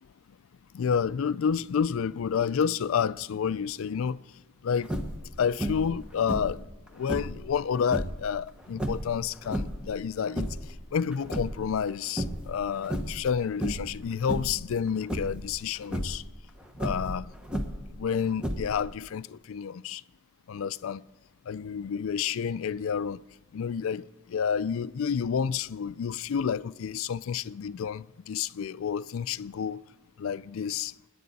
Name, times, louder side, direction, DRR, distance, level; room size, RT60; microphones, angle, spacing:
voice 1, 0.7-4.2 4.6-4.9 5.4-6.6 6.9-10.5 10.9-16.2 16.8-17.3 18.0-20.0 20.5-21.0 21.5-23.2 23.5-29.8 30.2-30.9, left 7 dB, 65° left, 0.4 m, -29 dB
sound 1, 4.8-5.3 5.6-6.0 6.3-7.4 7.8-8.2 8.7-9.9 10.2-10.7 11.1-11.9 12.2-12.5 12.8-13.3 13.6-14.0 14.3-14.6 15.1-15.4 15.8-16.2 16.7-17.9 18.4-18.9, equal, 5° right, 1.0 m, -32 dB
26.0 x 10.0 x 4.1 m
head